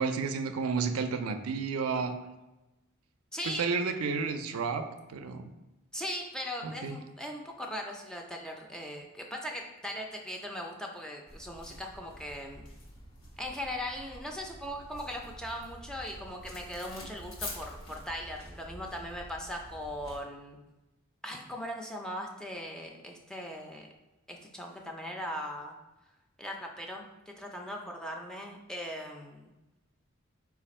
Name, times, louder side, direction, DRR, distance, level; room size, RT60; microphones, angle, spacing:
voice 1, 0.0-2.2 3.5-5.5 6.6-7.0, right 5 dB, 90° right, 7 dB, 0.4 m, -31 dB
voice 2, 3.3-3.6 5.9-12.6 13.4-20.6 21.2-23.9 24.3-25.7 26.4-29.5, equal, 5° left, 1 dB, 0.4 m, -39 dB
sound 1, 11.3-20.2, left 1 dB, 80° left, 1.0 m, -47 dB
4.3 x 2.5 x 4.1 m, 1.0 s
head